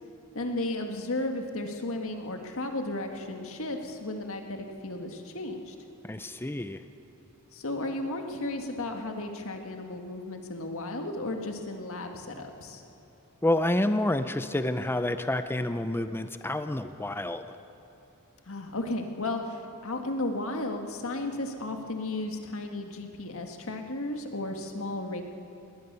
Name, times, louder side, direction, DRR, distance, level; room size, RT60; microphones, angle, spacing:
voice 1, 0.3-5.8 7.5-12.8 18.5-25.2, left 2 dB, 65° left, 4 dB, 1.8 m, -34 dB
voice 2, 6.0-6.8 13.4-17.6, left 1 dB, 10° left, 10 dB, 0.5 m, -28 dB
20.5 x 18.5 x 6.8 m, 2.8 s
head